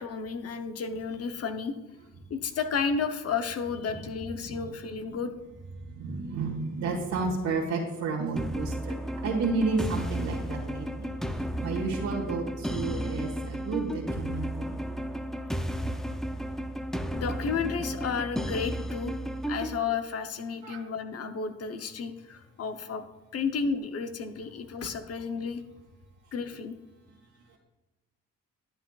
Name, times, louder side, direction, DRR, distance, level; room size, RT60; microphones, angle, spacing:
voice 1, 0.0-1.8 2.3-5.3 17.1-19.1 19.5-23.0 23.3-25.6 26.3-26.7, left 5 dB, 55° left, 8 dB, 0.8 m, -32 dB
voice 2, 5.8-9.0 9.2-11.1 11.6-14.8 20.6-20.8, right 4 dB, 70° right, -3 dB, 1.6 m, -31 dB
sound 1, 8.4-19.8, equal, ahead, 0.5 m, -33 dB
11.5 x 8.0 x 2.4 m, 1.2 s
cardioid pair, 90°, 30 cm